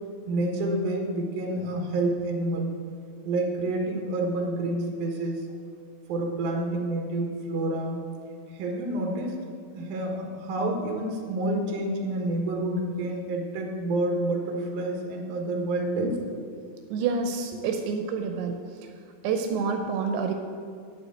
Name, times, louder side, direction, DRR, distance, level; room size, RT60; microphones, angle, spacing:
voice 1, 0.3-2.7 3.2-5.4 6.1-8.0 8.5-9.4 9.7-16.2, right 1 dB, 70° right, 2 dB, 3.2 m, -28 dB
voice 2, 16.9-18.6 19.2-20.3, right 5 dB, 90° right, 5 dB, 2.8 m, -28 dB
8.7 x 8.3 x 8.7 m, 2.1 s
omnidirectional pair, 4.6 m